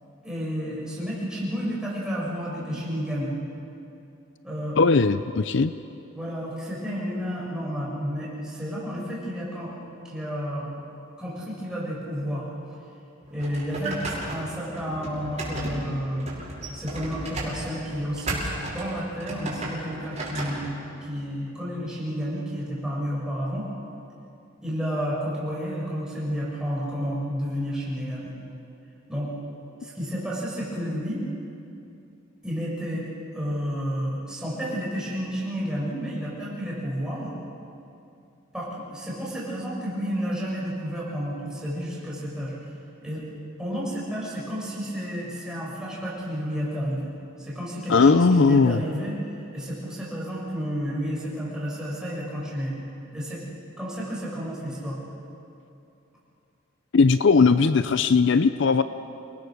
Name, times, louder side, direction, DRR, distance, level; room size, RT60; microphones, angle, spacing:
voice 1, 0.2-3.3 4.4-4.8 6.1-9.8 10.0-10.7 11.2-12.5 13.3-16.3 16.7-20.7 21.0-23.7 24.6-28.3 29.1-29.3 29.8-31.2 32.4-33.0 33.3-37.3 38.5-42.5 43.0-43.2 43.6-47.1 47.4-49.2 49.5-52.8 53.1-53.5 53.8-55.0, equal, 5° right, -6 dB, 6.9 m, -31 dB
voice 2, 4.8-5.7 47.9-48.8 56.9-58.8, left 4 dB, 60° left, 12 dB, 0.5 m, -18 dB
sound 1, 13.2-20.6, right 2 dB, 35° right, 6.1 m, -34 dB
28.5 x 20.0 x 6.6 m, 2.7 s
head